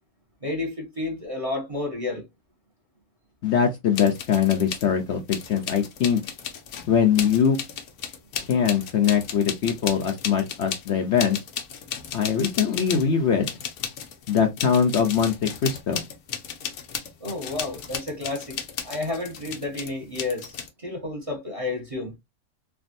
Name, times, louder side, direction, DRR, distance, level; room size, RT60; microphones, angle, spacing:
voice 1, 0.4-2.3 17.2-22.1, left 2 dB, 25° right, 0.9 m, -31 dB
voice 2, 3.4-6.2 6.9-7.6 8.5-11.4 12.1-13.5 14.3-16.0, left 7 dB, 60° left, 0.8 m, -22 dB
sound 1, 3.9-4.9 5.3-13.1 13.4-20.7, left 8 dB, 90° left, 1.2 m, -34 dB
3.4 x 2.3 x 2.5 m
omnidirectional pair, 1.5 m